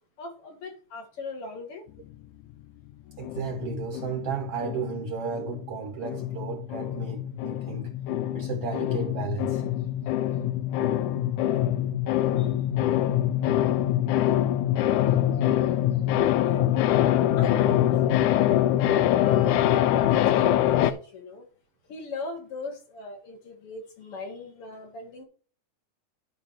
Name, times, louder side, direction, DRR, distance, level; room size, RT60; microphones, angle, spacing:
voice 1, 0.2-1.8 12.4-12.5 16.5-16.8 17.4-18.5 19.2-21.5 21.9-25.2, left 3 dB, 50° left, 2.3 m, -38 dB
hear the fear, 3.2-5.8 6.0-20.9, left 12 dB, 85° left, 1.8 m, -24 dB
voice 2, 3.2-7.9 8.3-9.6 13.0-13.1, right 7 dB, 75° right, 1.4 m, -34 dB
12.0 x 4.2 x 5.7 m
omnidirectional pair, 4.0 m